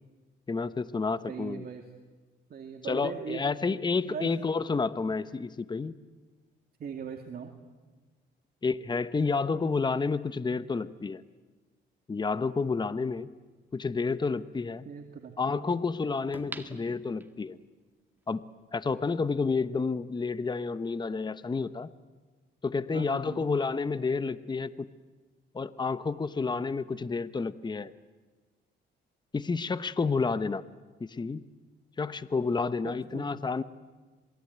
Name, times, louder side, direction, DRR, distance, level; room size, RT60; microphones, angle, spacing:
voice 1, 0.5-1.7 2.8-5.9 8.6-11.2 12.1-13.3 13.7-14.9 15.4-17.6 18.3-18.4 18.7-21.9 22.6-24.9 25.5-27.9 29.3-30.6 31.0-31.4 32.0-33.6, left 4 dB, 20° left, 14 dB, 0.9 m, -30 dB
voice 2, 1.3-1.8 2.5-3.4 3.7-4.3 6.8-7.5 14.8-15.8 22.9-23.5 32.8-33.5, right 7 dB, 50° right, 4 dB, 2.3 m, -40 dB
sound 1, 16.3-17.7 18.2-18.3, right 1 dB, 10° right, 2.0 m, -44 dB
27.0 x 21.0 x 9.4 m, 1.3 s
cardioid pair, 90°, 20 cm